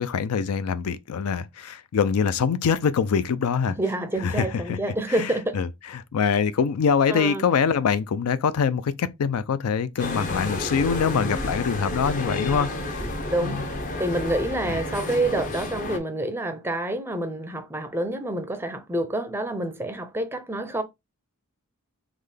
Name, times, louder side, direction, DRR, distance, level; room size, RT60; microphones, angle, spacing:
voice 1, 0.0-3.8 4.2-4.8 5.1-5.7 5.9-13.1 13.4-13.6 14.7-14.8, left 6 dB, 85° left, 0.4 m, -24 dB
voice 2, 3.7-5.6 7.1-7.4 13.3-13.6 14.0-20.8, right 1 dB, 10° right, 0.4 m, -27 dB
sound 1, 10.0-16.0, left 1 dB, 35° left, 0.6 m, -30 dB
3.7 x 2.1 x 3.2 m
head